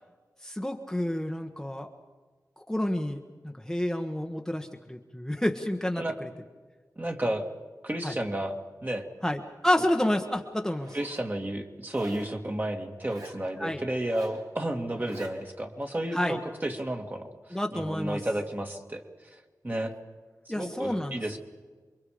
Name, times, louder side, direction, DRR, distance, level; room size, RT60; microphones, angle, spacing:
voice 1, 0.4-1.9 2.6-3.2 3.4-6.3 8.0-8.1 9.2-11.0 13.6-13.8 16.1-16.4 17.5-18.2 20.5-21.2, left 1 dB, 5° left, 3 dB, 1.3 m, -29 dB
voice 2, 7.0-7.4 7.8-8.5 8.8-9.1 10.9-19.0 19.6-19.9 20.5-21.4, right 1 dB, 30° right, 3 dB, 2.5 m, -32 dB
Zipper (clothing), 10.7-11.3 11.9-12.4 13.0-13.4 14.0-14.4 14.9-15.4, right 2 dB, 70° right, 4.2 m, -47 dB
28.5 x 24.0 x 5.1 m, 1.4 s
wide cardioid pair, 85°, 7 cm